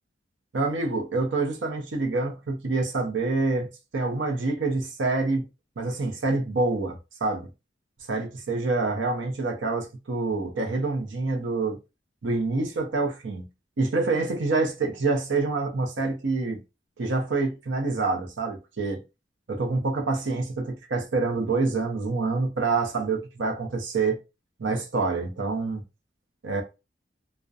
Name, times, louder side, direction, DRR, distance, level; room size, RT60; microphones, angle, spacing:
voice 1, 0.5-5.5 5.8-7.5 8.1-11.8 12.2-13.5 13.8-16.6 17.0-19.0 19.5-24.2 24.6-25.8 26.4-26.6, right 3 dB, 80° right, 0.6 m, -27 dB
2.4 x 2.1 x 2.5 m
head